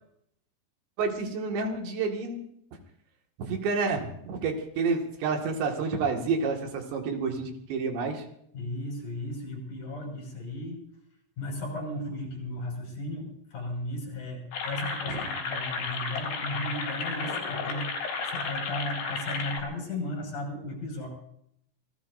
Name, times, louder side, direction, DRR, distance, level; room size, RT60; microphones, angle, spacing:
voice 1, 1.0-2.4 3.4-8.2 15.1-15.2, right 4 dB, 75° right, 2 dB, 4.3 m, -29 dB
voice 2, 8.5-10.8 11.4-21.1, left 1 dB, 45° left, 0 dB, 7.4 m, -35 dB
sound 1, 14.5-19.6, left 4 dB, 80° left, 6.1 m, -33 dB
27.0 x 19.0 x 2.7 m, 0.70 s
omnidirectional pair, 5.1 m